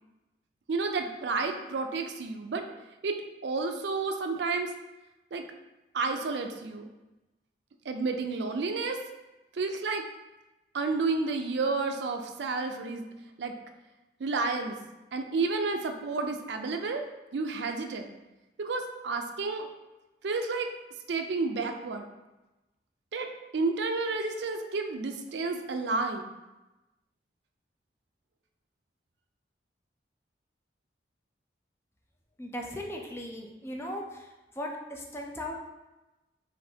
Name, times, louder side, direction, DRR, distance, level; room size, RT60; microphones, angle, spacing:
voice 1, 0.7-2.6 3.0-3.2 3.4-4.7 5.3-5.4 5.9-6.9 7.9-9.0 9.5-10.0 10.7-13.0 13.4-13.5 14.2-14.8 15.1-17.1 17.3-18.1 18.6-19.7 20.2-20.7 21.1-22.1 23.1-23.3 23.5-26.3, right 3 dB, 75° right, 5 dB, 0.4 m, -30 dB
voice 2, 32.4-34.3 34.6-35.7, left 1 dB, 15° left, 0 dB, 0.4 m, -37 dB
5.2 x 2.6 x 2.8 m, 1.0 s
head